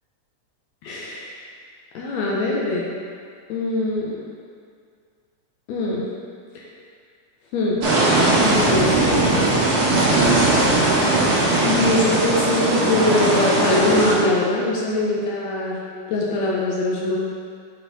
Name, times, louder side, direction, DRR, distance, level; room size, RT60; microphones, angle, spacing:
voice 1, 0.8-1.4 1.9-2.8 3.5-4.1 5.7-6.0 6.5-6.6 7.5-7.9 8.4-9.2 10.8-10.9 11.6-15.8 16.1-17.2, left 2 dB, 75° left, -4 dB, 1.8 m, -22 dB
sound 1, 7.8-14.1, right 2 dB, 45° right, 1.4 m, -19 dB
6.4 x 4.3 x 4.0 m, 2.1 s
omnidirectional pair, 3.5 m